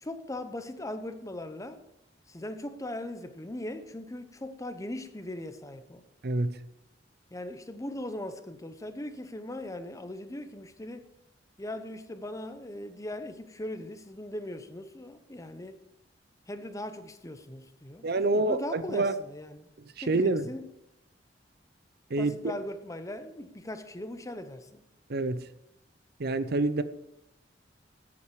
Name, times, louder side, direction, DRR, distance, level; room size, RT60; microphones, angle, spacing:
voice 1, 0.0-1.8 2.3-6.0 7.3-11.0 11.6-15.8 16.5-19.7 20.0-20.7 22.2-24.8, left 1 dB, 20° left, 0.9 m, -39 dB
voice 2, 6.2-6.6 18.0-19.1 20.0-20.5 22.1-22.3 25.1-25.4 26.2-26.8, right 2 dB, 60° right, 0.6 m, -27 dB
13.0 x 8.6 x 4.9 m
head